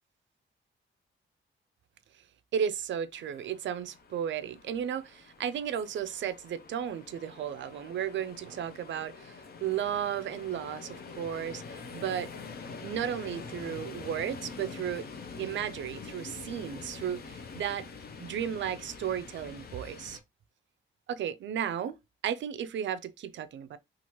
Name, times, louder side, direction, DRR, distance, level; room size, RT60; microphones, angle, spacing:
voice 1, 2.5-12.3 12.8-15.1 15.4-17.9 18.2-20.2 21.1-22.0 22.2-23.8, right 9 dB, 65° right, 0.4 m, -34 dB
sound 1, 3.1-20.2, left 4 dB, 45° left, 0.5 m, -45 dB
2.9 x 2.4 x 2.9 m
cardioid pair, 120°, 21 cm